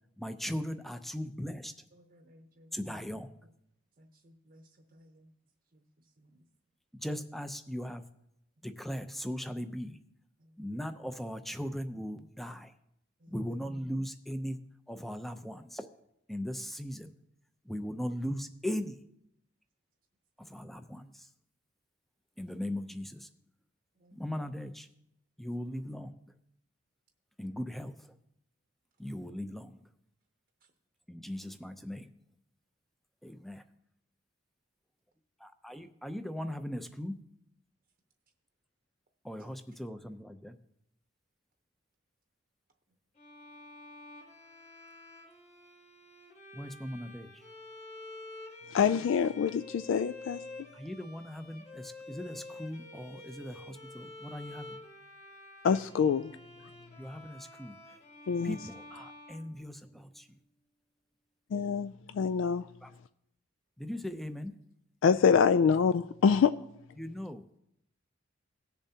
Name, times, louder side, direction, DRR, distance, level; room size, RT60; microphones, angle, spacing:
voice 1, 0.2-1.7 2.7-3.3 6.9-8.0 8.6-10.0 10.6-12.7 13.3-14.6 14.9-15.4 16.3-17.1 17.7-18.9 20.4-21.3 22.4-23.3 24.1-24.9 25.4-26.1 27.4-27.9 29.0-29.8 31.1-32.1 33.2-33.6 35.4-37.1 39.2-40.6 46.5-47.3 50.7-54.7 57.0-57.8 58.4-60.3 62.8-62.9 63.8-64.5 67.0-67.4, equal, ahead, 0.5 m, -38 dB
voice 2, 1.9-2.8 4.0-5.3 5.7-5.8 6.2-6.4 10.4-10.5 13.2-13.4 24.0-24.2, equal, 45° right, 0.8 m, -60 dB
Bowed string instrument, 43.2-60.2, left 2 dB, 35° left, 1.6 m, -49 dB
voice 3, 48.7-50.4 55.6-56.3 58.3-58.6 61.5-62.7 65.0-66.5, left 6 dB, 80° left, 0.3 m, -25 dB
18.5 x 6.9 x 2.8 m
head